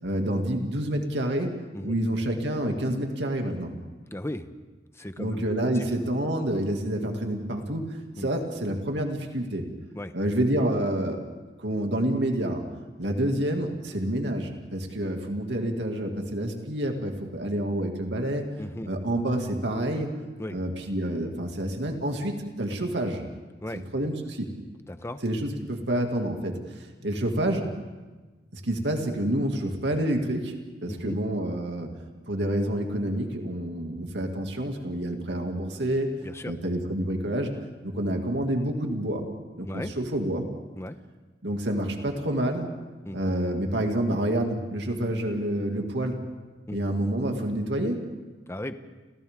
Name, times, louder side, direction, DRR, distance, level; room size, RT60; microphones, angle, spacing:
voice 1, 0.0-1.6 1.8-3.7 5.2-7.9 8.2-9.7 10.1-11.2 11.6-12.6 13.0-18.5 18.9-20.1 20.5-23.2 23.7-24.5 25.2-27.7 28.5-30.5 30.8-31.9 32.3-36.1 36.4-37.5 37.8-39.3 39.6-40.5 41.4-42.7 43.1-46.2 46.7-48.1, right 1 dB, 90° right, 3 dB, 2.4 m, -28 dB
voice 2, 4.1-4.5 4.9-5.4 5.7-5.8 8.2-8.3 9.9-10.1 18.6-18.9 20.4-20.6 23.6-23.8 24.9-25.2 30.9-31.2 36.2-36.5 39.7-39.9 40.8-41.0 43.1-43.2 46.7-46.8 48.5-48.7, left 1 dB, 15° left, 9 dB, 0.9 m, -36 dB
29.5 x 29.0 x 3.7 m, 1.2 s
head